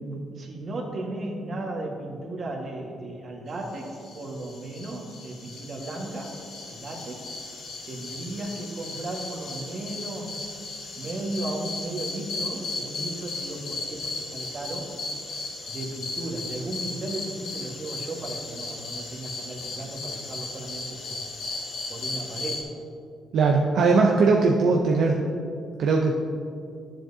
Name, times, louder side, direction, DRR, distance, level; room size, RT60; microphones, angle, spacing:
voice 1, 0.0-6.4 6.7-7.3 7.9-10.4 10.9-14.9 15.7-21.2 21.9-22.7, right 2 dB, 50° right, -1 dB, 1.6 m, -35 dB
sound 1, 3.7-22.6, left 3 dB, 70° left, 2.0 m, -36 dB
voice 2, 23.3-25.2 25.8-26.2, right 4 dB, 70° right, 1 dB, 0.6 m, -20 dB
11.5 x 7.4 x 2.8 m, 2.4 s
cardioid pair, 90°, 0 cm